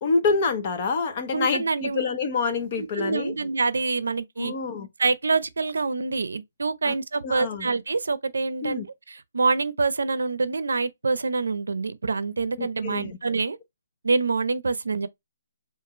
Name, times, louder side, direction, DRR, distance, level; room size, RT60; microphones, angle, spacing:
voice 1, 0.0-3.3 4.4-4.9 6.8-6.9 7.2-7.7 8.6-8.8 12.6-13.2, left 4 dB, 35° left, 0.8 m, -27 dB
voice 2, 1.3-2.0 2.8-4.5 5.0-13.6 14.0-15.1, right 4 dB, 85° right, 0.6 m, -26 dB
5.2 x 2.5 x 3.0 m
hypercardioid pair, 165°, 0 cm